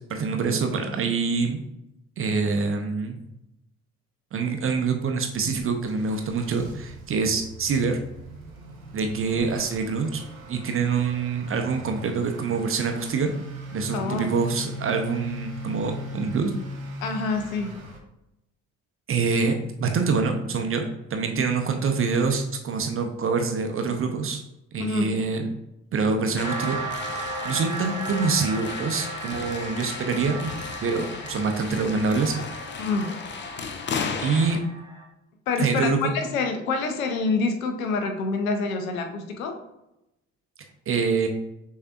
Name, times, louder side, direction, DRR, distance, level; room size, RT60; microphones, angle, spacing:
voice 1, 0.1-1.6 2.2-3.2 4.3-8.0 8.9-10.2 10.5-13.3 13.7-16.5 19.1-20.8 21.1-24.4 24.7-25.4 25.9-26.8 27.2-30.5 30.8-32.3 34.2-34.6 35.6-36.1 40.9-41.3, right 4 dB, 35° right, 4 dB, 0.6 m, -25 dB
Motor vehicle (road) / Accelerating revving vroom, 5.4-18.0, equal, 90° right, 0.5 m, -40 dB
voice 2, 13.9-14.3 17.0-17.8 24.8-25.1 32.8-33.1 35.5-39.6, left 4 dB, 75° left, 6 dB, 0.6 m, -27 dB
sound 1, 26.4-34.6, left 5 dB, 30° left, 0.5 m, -35 dB
sound 2, 26.4-35.0, right 2 dB, 10° right, 1.3 m, -36 dB
6.4 x 2.7 x 2.4 m, 0.89 s
figure-of-eight pair, 45°, 41 cm